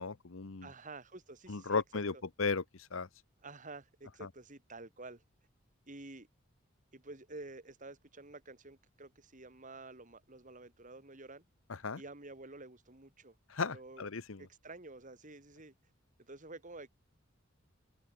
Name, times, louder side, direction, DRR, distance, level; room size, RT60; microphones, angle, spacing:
voice 1, 0.0-0.7 1.5-3.1 4.2-4.3 11.7-12.0 13.5-14.5, left 4 dB, 70° left, 1.0 m, -36 dB
voice 2, 0.6-2.0 3.4-5.2 5.9-6.3 6.9-11.4 12.0-13.3 13.7-14.1 14.4-15.7 16.2-16.9, right 2 dB, 40° right, 2.8 m, -50 dB
head